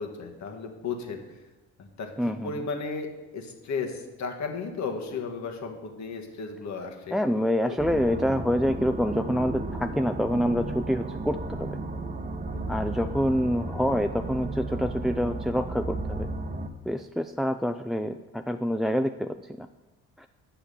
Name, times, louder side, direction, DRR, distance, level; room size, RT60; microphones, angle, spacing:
voice 1, 0.0-1.4 1.8-3.1 3.3-7.2 7.7-7.8 10.5-10.7 12.5-12.7, left 4 dB, 65° left, 3 dB, 1.6 m, -35 dB
voice 2, 2.2-2.5 7.1-11.7 12.7-16.3 16.9-19.7 20.2-20.3, equal, ahead, 8 dB, 0.3 m, -27 dB
sound 1, 7.8-16.7, right 2 dB, 25° right, 0.8 m, -34 dB
8.1 x 5.8 x 7.0 m, 1.1 s
cardioid pair, 90°, 30 cm